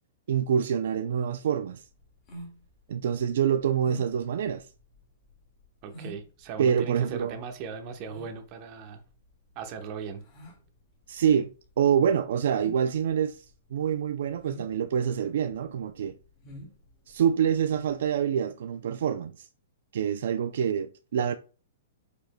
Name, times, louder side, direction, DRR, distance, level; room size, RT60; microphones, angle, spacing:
voice 1, 0.3-1.8 2.9-4.7 6.6-7.4 11.1-13.5 13.7-16.1 17.1-19.5 19.9-21.3, right 8 dB, 60° right, 0.4 m, -26 dB
sound 1, 1.8-18.0, equal, 25° left, 1.9 m, -49 dB
voice 2, 5.8-9.0 9.6-10.2, right 6 dB, 30° right, 0.9 m, -38 dB
9.0 x 5.1 x 2.2 m
hypercardioid pair, 170°, 0 cm